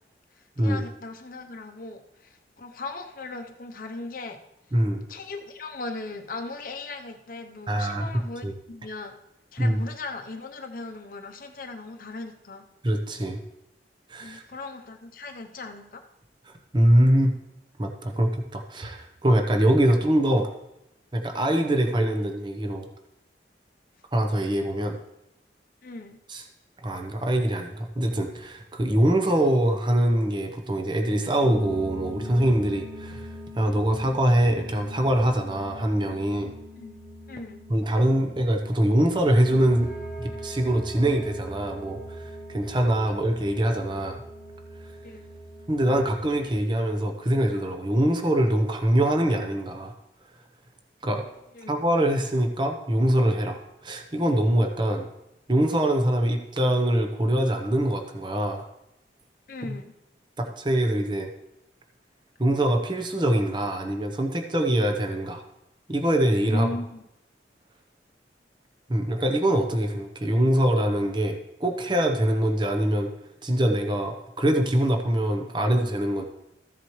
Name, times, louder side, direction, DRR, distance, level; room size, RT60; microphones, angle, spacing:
voice 1, 0.4-4.4 5.1-9.1 9.5-12.7 14.2-16.0 25.8-26.2 36.8-37.0 37.3-37.6 43.1-43.2 45.0-45.3 51.5-51.8 59.5-59.9 66.5-67.0, left 3 dB, 50° left, 5 dB, 0.7 m, -38 dB
voice 2, 4.7-5.0 7.7-8.1 8.4-8.5 9.6-9.8 12.8-13.4 14.1-14.4 16.5-17.4 17.8-20.5 21.1-22.9 24.1-25.0 26.3-26.4 26.8-33.3 33.6-36.5 37.7-39.9 40.2-44.2 45.7-49.9 51.0-51.2 51.7-55.1 55.5-58.7 59.6-59.8 60.4-61.3 62.4-65.4 65.9-66.7 68.9-73.1 73.4-76.2, right 1 dB, 25° right, 4 dB, 0.8 m, -23 dB
sound 1, 31.4-46.6, equal, 60° right, 3.5 m, -41 dB
14.5 x 7.6 x 3.1 m, 0.85 s
head